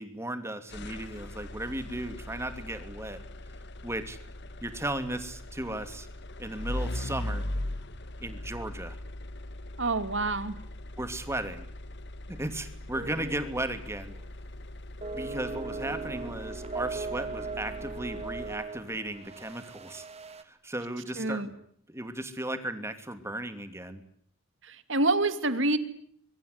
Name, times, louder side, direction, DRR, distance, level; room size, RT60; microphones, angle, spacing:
voice 1, 0.0-3.2 3.8-4.2 4.6-6.1 6.4-7.5 8.2-9.0 11.0-11.7 12.3-14.1 15.1-20.1 20.4-21.5 21.9-24.0, right 1 dB, 15° right, 9 dB, 2.8 m, -36 dB
sound 1, 0.7-19.0, left 1 dB, 55° left, 1.4 m, -40 dB
voice 2, 9.8-10.6 21.2-21.5 24.6-25.8, right 2 dB, 60° right, 11 dB, 2.6 m, -27 dB
sound 2, 12.9-13.7 14.0-14.3 15.0-20.4, right 4 dB, 30° right, 2.2 m, -38 dB
25.0 x 23.5 x 9.6 m, 0.63 s
head